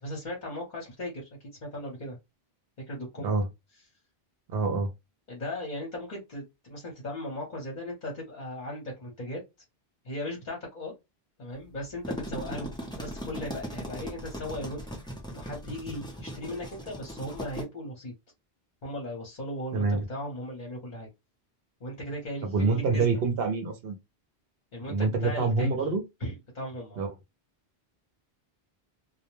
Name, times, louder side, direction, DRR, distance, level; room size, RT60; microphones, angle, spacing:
voice 1, 0.0-1.3 1.6-2.2 2.9-3.3 5.3-9.4 10.0-10.9 11.4-14.8 15.3-18.1 18.8-21.1 21.8-23.1 24.7-25.7 26.2-27.0, left 1 dB, 50° left, 1.0 m, -37 dB
voice 2, 4.5-4.9 19.7-20.1 22.4-24.0 24.9-26.0 27.0-27.1, right 3 dB, 70° right, 0.8 m, -26 dB
sound 1, 11.8-17.6, equal, 5° left, 0.6 m, -38 dB
2.2 x 2.1 x 3.0 m
omnidirectional pair, 1.1 m